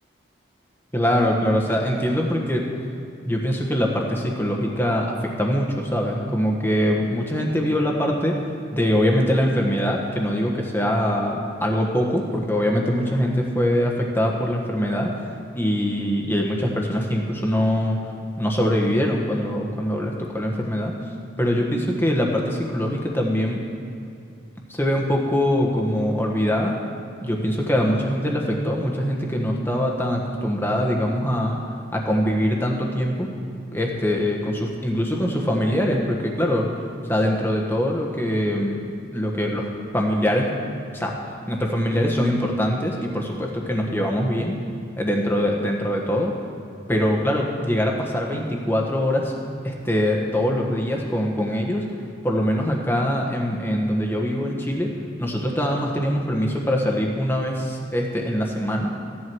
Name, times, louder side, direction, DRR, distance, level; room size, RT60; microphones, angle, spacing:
voice 1, 0.9-2.6 3.2-8.4 8.7-15.1 15.5-18.0 18.4-20.9 21.4-23.6 24.7-26.8 27.2-31.6 31.9-33.3 33.7-36.7 37.1-39.7 39.9-40.5 40.9-41.1 41.5-44.6 45.0-46.3 46.9-49.3 49.6-51.9 52.2-54.9 55.2-58.9, equal, 10° left, 0 dB, 1.4 m, -23 dB
15.5 x 11.0 x 4.7 m, 2.5 s
head